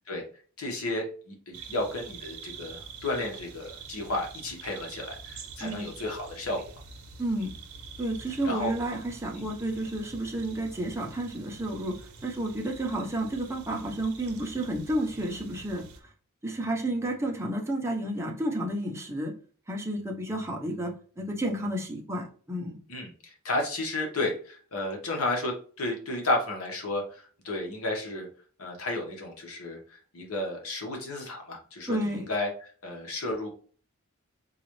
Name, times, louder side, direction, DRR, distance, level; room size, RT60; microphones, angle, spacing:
voice 1, 0.6-6.6 7.4-7.5 8.4-8.7 9.3-9.5 22.9-28.3 28.6-33.5, left 2 dB, 75° left, 1 dB, 1.1 m, -32 dB
sound 1, 1.5-16.0, right 4 dB, 85° right, 0.7 m, -46 dB
voice 2, 5.6-5.9 7.2-7.5 8.0-16.1 16.4-19.3 19.7-22.8 31.9-32.3, right 1 dB, 10° right, 0 dB, 0.7 m, -31 dB
3.9 x 2.4 x 3.0 m, 0.42 s
head